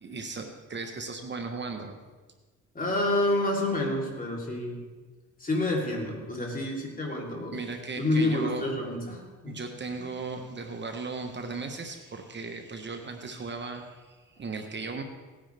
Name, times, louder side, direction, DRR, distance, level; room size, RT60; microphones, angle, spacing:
voice 1, 0.0-2.0 7.5-8.7 9.4-15.0, right 4 dB, 35° right, 4 dB, 1.2 m, -37 dB
voice 2, 2.7-4.8 5.4-7.6 8.0-9.6, left 1 dB, 30° left, -2 dB, 3.6 m, -28 dB
18.0 x 9.9 x 3.5 m, 1.3 s
cardioid pair, 90°, 30 cm